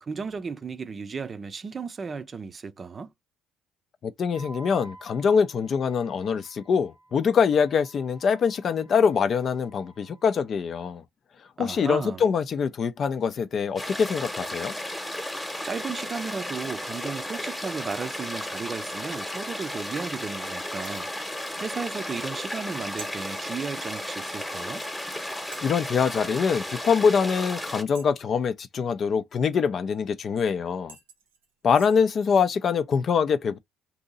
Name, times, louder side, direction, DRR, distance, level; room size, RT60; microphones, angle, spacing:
voice 1, 0.0-3.1 11.6-12.2 15.6-21.1 21.6-24.8, right 5 dB, 40° right, 0.4 m, -34 dB
voice 2, 4.0-11.0 11.6-14.7 25.6-31.0 31.6-33.6, left 6 dB, 50° left, 0.4 m, -24 dB
Wind instrument woodwind instrument, 4.3-10.4, right 2 dB, 90° left, 1.3 m, -52 dB
sound 1, 13.8-27.8, left 1 dB, 10° left, 1.0 m, -34 dB
sound 2, 20.8-21.1 23.0-23.2 24.6-24.7 25.5-25.8 27.9-28.4 30.4-30.5 30.9-32.0, right 5 dB, 85° right, 0.6 m, -47 dB
2.7 x 2.7 x 3.9 m
hypercardioid pair, 55°, 0 cm